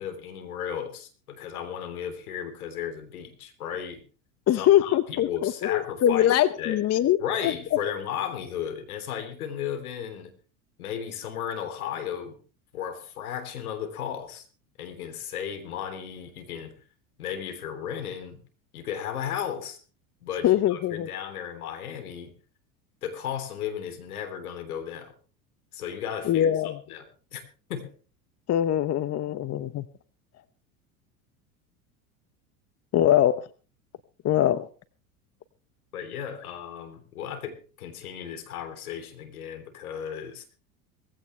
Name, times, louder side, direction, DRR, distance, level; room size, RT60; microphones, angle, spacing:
voice 1, 0.0-4.0 4.5-6.8 7.2-10.3 10.8-12.4 12.7-14.4 14.8-16.8 17.2-18.4 18.7-19.8 20.2-22.3 23.0-25.1 25.7-27.4 27.7-27.9 35.9-40.5, left 8 dB, 80° left, 8 dB, 3.4 m, -35 dB
voice 2, 4.5-7.2 7.4-7.5 20.4-21.1 26.3-26.8 28.5-29.8 32.9-33.4 34.2-34.7, left 11 dB, 35° left, 15 dB, 1.0 m, -22 dB
19.5 x 15.5 x 3.4 m, 0.37 s
hypercardioid pair, 80°, 43 cm